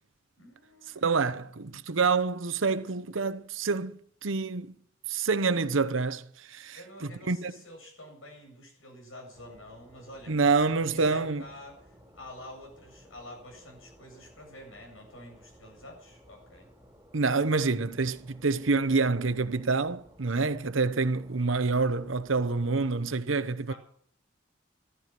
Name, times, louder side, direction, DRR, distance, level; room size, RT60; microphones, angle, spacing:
voice 1, 0.4-1.2 6.7-16.7 20.3-20.6 23.7-23.8, left 1 dB, 85° left, 8.0 m, -48 dB
voice 2, 0.9-4.7 5.1-7.5 10.3-11.4 17.1-23.7, right 4 dB, 75° right, 0.9 m, -27 dB
sound 1, 9.3-23.0, equal, 5° right, 4.0 m, -57 dB
14.5 x 12.5 x 6.0 m
head